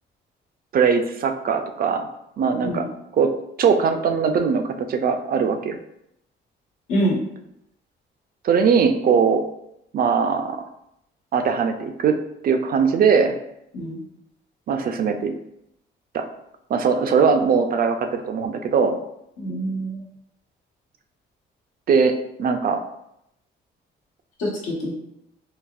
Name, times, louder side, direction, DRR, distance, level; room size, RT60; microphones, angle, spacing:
voice 1, 0.7-2.1 2.4-2.9 3.2-3.3 3.6-5.8 8.4-9.5 9.9-10.6 11.3-12.2 12.4-13.4 14.7-15.3 16.1-16.3 16.7-19.0 21.9-22.8, right 6 dB, 50° right, 7 dB, 0.4 m, -20 dB
voice 2, 19.4-20.0 24.4-24.9, equal, 85° left, -5 dB, 1.2 m, -25 dB
4.0 x 2.0 x 2.4 m, 0.79 s
cardioid pair, 90°, 20 cm